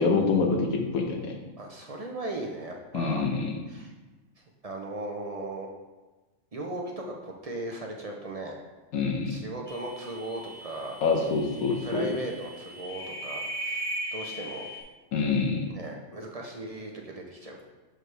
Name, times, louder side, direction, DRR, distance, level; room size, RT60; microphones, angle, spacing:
voice 1, 0.0-1.3 2.9-3.6 8.9-9.4 11.0-12.1 15.1-15.7, left 4 dB, 85° left, 2 dB, 1.2 m, -26 dB
voice 2, 1.6-3.2 3.7-3.9 4.6-5.7 6.5-8.6 9.3-11.0 11.7-14.7 15.7-17.7, right 1 dB, 45° right, 0 dB, 0.5 m, -37 dB
sound 1, 9.7-14.8, right 1 dB, 25° right, 1.1 m, -38 dB
6.3 x 4.9 x 3.3 m, 1.2 s
omnidirectional pair, 1.4 m